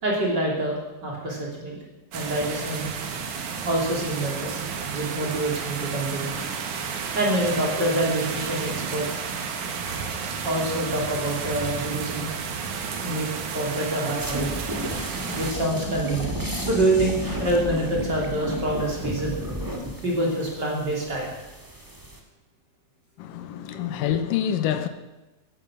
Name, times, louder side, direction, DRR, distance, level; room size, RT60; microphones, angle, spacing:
voice 1, 0.0-1.8 2.1-2.9 3.6-4.6 4.9-6.3 7.1-9.1 10.4-12.3 13.0-13.3 13.5-14.5 15.3-19.4 20.0-21.3 23.7-23.9, right 1 dB, 30° right, 3.4 m, -26 dB
sound 1, 2.1-15.5, right 6 dB, 65° right, 2.7 m, -32 dB
sound 2, 14.2-22.2, equal, 15° right, 0.8 m, -32 dB
voice 2, 23.2-24.9, left 10 dB, 80° left, 2.4 m, -26 dB
15.0 x 11.5 x 6.1 m
omnidirectional pair, 3.9 m